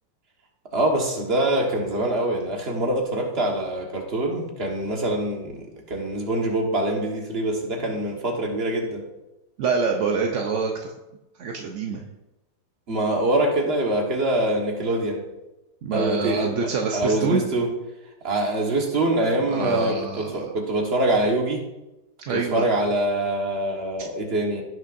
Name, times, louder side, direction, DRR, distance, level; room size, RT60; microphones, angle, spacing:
voice 1, 0.7-9.1 12.9-15.2 15.9-17.7 18.2-21.6 22.3-24.6, right 1 dB, 35° right, 1 dB, 1.5 m, -24 dB
voice 2, 9.6-10.9 11.4-12.0 15.8-17.4 19.5-20.5 22.3-22.7, right 5 dB, 60° right, 1 dB, 0.8 m, -26 dB
16.0 x 6.3 x 2.6 m, 0.98 s
omnidirectional pair, 2.0 m